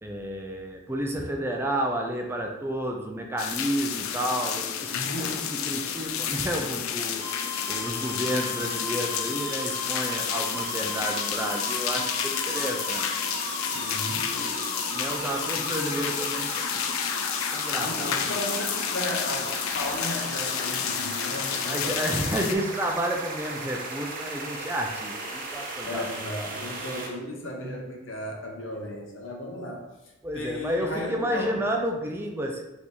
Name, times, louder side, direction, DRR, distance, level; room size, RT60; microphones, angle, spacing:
voice 1, 0.0-13.1 14.0-17.1 17.5-18.4 21.7-26.1 30.2-32.6, right 1 dB, 10° right, 2 dB, 0.4 m, -31 dB
sound 1, 3.4-22.5, left 8 dB, 90° left, 0.4 m, -30 dB
voice 2, 4.9-5.5 13.7-14.4 17.8-22.4 25.8-29.9 30.3-31.6, left 1 dB, 70° left, 1 dB, 0.8 m, -35 dB
sound 2, 7.2-27.1, right 1 dB, 45° right, 0.7 m, -36 dB
3.4 x 3.0 x 4.0 m, 1.0 s
head